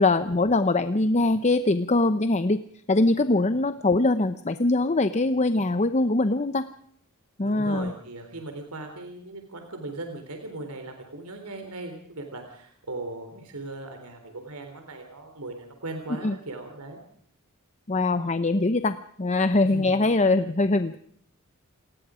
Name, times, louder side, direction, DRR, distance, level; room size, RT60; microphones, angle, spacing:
voice 1, 0.0-2.6 2.9-6.6 7.4-7.9 16.2-16.4 17.9-21.0, left 2 dB, 30° left, 11 dB, 0.8 m, -22 dB
voice 2, 7.4-17.0 19.6-19.9 20.2-20.5, right 2 dB, 85° right, 5 dB, 3.7 m, -38 dB
28.5 x 20.0 x 5.0 m, 0.65 s
head